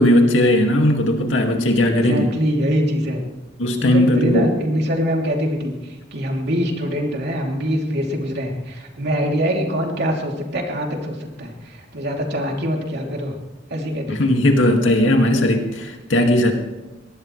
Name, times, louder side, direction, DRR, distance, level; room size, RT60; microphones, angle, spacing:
voice 1, 0.0-2.3 3.6-4.5 14.1-16.5, left 1 dB, 80° left, 3 dB, 2.2 m, -17 dB
voice 2, 1.9-3.2 3.8-13.3 13.7-14.3, equal, 60° right, 0 dB, 3.0 m, -24 dB
22.5 x 18.0 x 3.3 m, 1.1 s
head